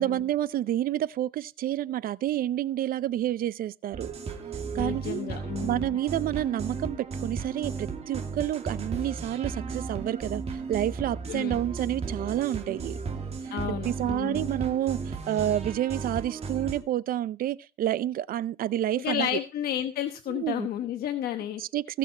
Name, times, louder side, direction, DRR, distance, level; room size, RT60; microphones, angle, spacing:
voice 1, 0.0-4.1 4.7-5.2 5.6-10.4 10.7-13.0 13.7-19.3 20.3-20.7 21.6-22.0, right 12 dB, 60° right, 0.6 m, -29 dB
sound 1, 3.9-16.8, right 4 dB, 40° right, 2.4 m, -35 dB
voice 2, 4.7-6.0 11.3-11.6 13.5-14.5 19.0-21.6, left 10 dB, 65° left, 1.1 m, -32 dB
19.0 x 6.3 x 4.4 m
cardioid pair, 110°, 17 cm